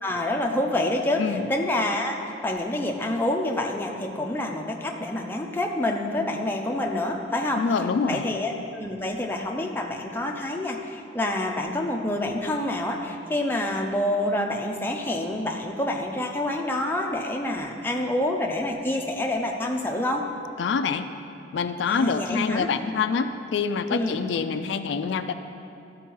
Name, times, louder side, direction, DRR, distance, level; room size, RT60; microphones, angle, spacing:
voice 1, 0.0-2.2 2.4-7.6 8.1-20.2 21.9-22.7 23.9-24.2, left 1 dB, 10° left, 1 dB, 0.5 m, -27 dB
voice 2, 1.2-1.5 7.5-8.3 20.6-21.1 21.5-25.3, left 5 dB, 75° left, 9 dB, 0.3 m, -26 dB
12.5 x 4.5 x 4.5 m, 2.7 s
head